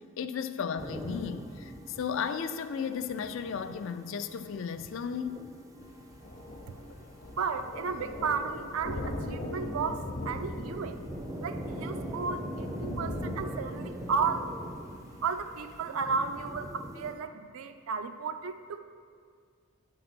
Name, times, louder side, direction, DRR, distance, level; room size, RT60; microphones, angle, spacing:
voice 1, 0.0-5.5, left 7 dB, 65° left, 11 dB, 0.4 m, -35 dB
sound 1, 0.8-17.1, right 1 dB, 15° right, 0.4 m, -43 dB
Thunder, 5.8-15.8, left 1 dB, 40° left, 0.7 m, -40 dB
voice 2, 7.4-11.0 11.4-14.5 15.2-18.8, right 5 dB, 75° right, 9 dB, 0.4 m, -33 dB
9.3 x 3.9 x 6.0 m, 2.1 s
head